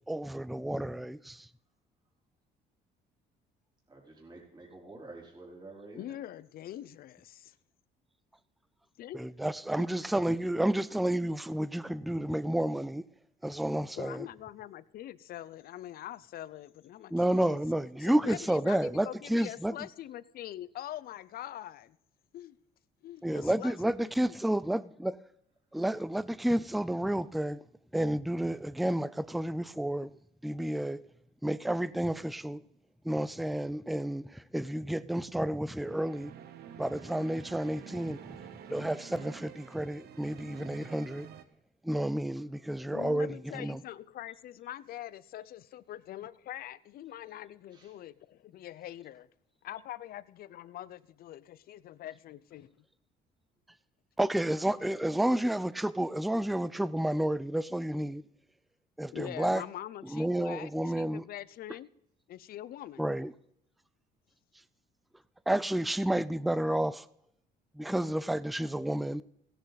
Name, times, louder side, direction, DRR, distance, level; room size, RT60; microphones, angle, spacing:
voice 1, 0.1-1.5 9.1-13.0 13.4-14.3 17.1-19.8 23.2-25.2 25.7-27.6 27.9-30.1 30.4-31.0 31.4-32.6 33.0-36.3 36.8-38.4 38.7-41.3 41.8-43.8 54.2-58.2 59.0-59.6 60.0-61.2 63.0-63.3 65.5-67.1 67.7-69.2, right 1 dB, ahead, 0.4 m, -31 dB
voice 2, 3.9-6.2 17.9-18.1 23.1-23.2 42.5-43.5 47.7-48.0, right 2 dB, 25° right, 4.0 m, -51 dB
voice 3, 6.0-7.5 9.0-9.2 9.8-10.0 14.0-17.6 18.0-22.0 22.3-22.6 23.0-24.4 42.9-49.3 49.6-52.7 59.1-60.7 61.0-61.9 62.3-63.0, left 12 dB, 60° left, 0.6 m, -43 dB
sound 1, 35.6-41.4, right 9 dB, 70° right, 1.1 m, -48 dB
17.0 x 10.0 x 4.1 m
cardioid pair, 110°, 17 cm